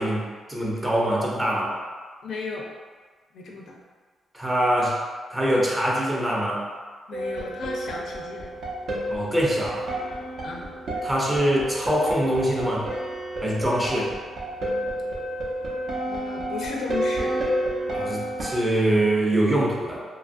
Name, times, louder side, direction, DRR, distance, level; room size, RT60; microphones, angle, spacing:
voice 1, 0.0-1.8 4.3-5.0 5.3-6.7 9.1-9.9 11.0-12.9 13.4-14.1 17.9-20.0, right 1 dB, 10° right, -4 dB, 0.5 m, -24 dB
voice 2, 2.2-2.7 3.3-3.8 7.1-8.5 10.4-10.7 16.1-17.4, left 4 dB, 70° left, -1 dB, 0.4 m, -35 dB
sound 1, 7.1-18.6, right 1 dB, 60° right, 0.6 m, -30 dB
2.8 x 2.3 x 2.5 m, 1.5 s
cardioid pair, 130°, 0 cm